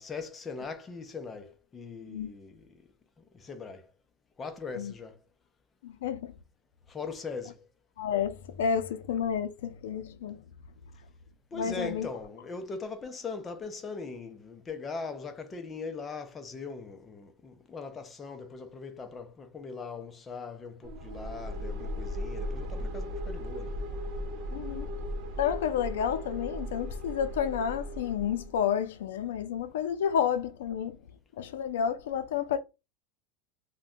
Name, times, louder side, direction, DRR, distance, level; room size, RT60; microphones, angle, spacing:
voice 1, 0.0-2.8 3.3-3.9 4.4-5.2 6.9-7.6 11.5-23.7, left 4 dB, 15° left, 0.5 m, -40 dB
voice 2, 5.8-6.3 8.0-10.4 11.5-12.1 24.5-25.0 25.4-31.0 31.4-32.6, left 8 dB, 85° left, 0.4 m, -30 dB
sound 1, 20.8-28.6, equal, 45° right, 0.6 m, -37 dB
2.6 x 2.1 x 3.6 m
supercardioid pair, 160°, 0 cm